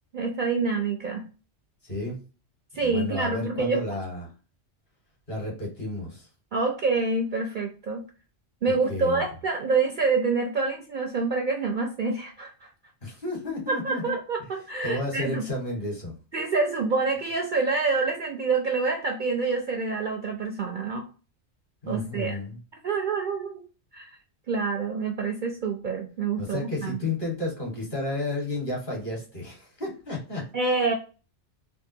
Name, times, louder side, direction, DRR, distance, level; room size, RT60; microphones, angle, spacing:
voice 1, 0.1-1.3 2.7-3.8 6.5-8.0 8.6-12.7 13.7-15.5 16.3-21.1 21.9-22.4 22.8-23.6 23.9-24.1 24.5-27.0 30.5-30.9, right 4 dB, 55° right, 3 dB, 0.6 m, -27 dB
voice 2, 1.8-2.2 2.8-4.3 5.3-6.3 8.7-9.2 13.0-14.1 14.8-16.2 21.8-22.6 26.4-30.5, left 2 dB, 45° left, -2 dB, 2.0 m, -32 dB
3.6 x 2.5 x 2.7 m, 0.35 s
omnidirectional pair, 1.2 m